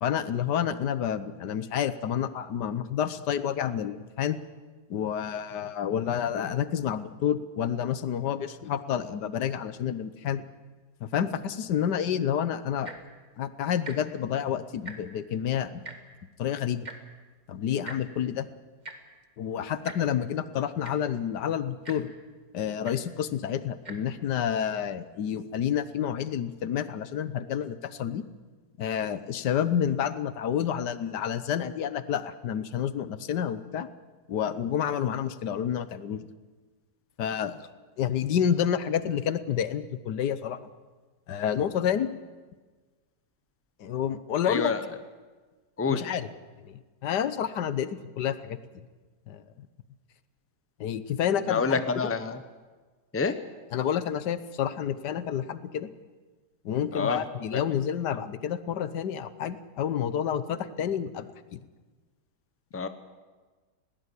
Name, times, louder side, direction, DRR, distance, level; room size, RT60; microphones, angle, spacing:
voice 1, 0.0-4.4 4.9-10.5 11.0-12.9 13.4-15.9 16.4-16.9 17.5-18.5 19.4-22.1 22.5-28.2 28.8-33.9 34.3-36.3 37.2-37.6 38.0-40.6 41.3-42.1 43.8-44.7 45.9-46.3 46.6-48.8 49.3-49.7 50.8-52.1 53.7-55.9 56.6-61.6, left 9 dB, 80° left, 14 dB, 1.6 m, -29 dB
Tick-tock, 12.7-13.1 13.8-14.0 14.3-14.4 14.7-15.2 15.8-16.0 16.8-17.0 17.8-18.0 18.8-19.0 19.8-20.0 20.6-20.7 20.8-21.1 21.8-22.0 22.8-23.0 23.8-24.0 24.7-24.8, right 3 dB, 25° right, 1.9 m, -41 dB
voice 2, 44.5-44.8 45.8-46.0 51.5-52.4 53.1-53.3 56.9-57.2 62.7-62.9, left 4 dB, 10° left, 10 dB, 0.8 m, -27 dB
21.0 x 17.5 x 8.4 m, 1.3 s
omnidirectional pair, 1.8 m